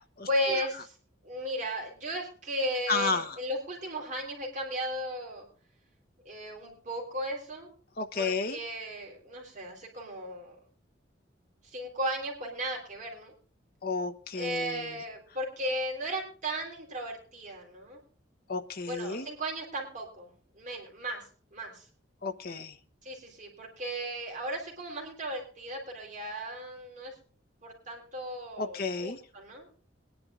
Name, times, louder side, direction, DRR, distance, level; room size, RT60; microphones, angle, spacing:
voice 1, 0.3-1.0 1.2-5.5 6.3-7.7 8.1-10.6 11.6-13.3 14.4-18.0 18.8-21.9 23.0-27.2 27.6-29.7, equal, 40° right, 0 dB, 3.9 m, -35 dB
voice 2, 2.9-3.2 8.0-8.6 13.8-14.8 18.5-19.3 22.2-22.7 28.6-29.2, left 4 dB, 50° left, 6 dB, 1.0 m, -31 dB
22.0 x 10.5 x 2.5 m, 0.42 s
head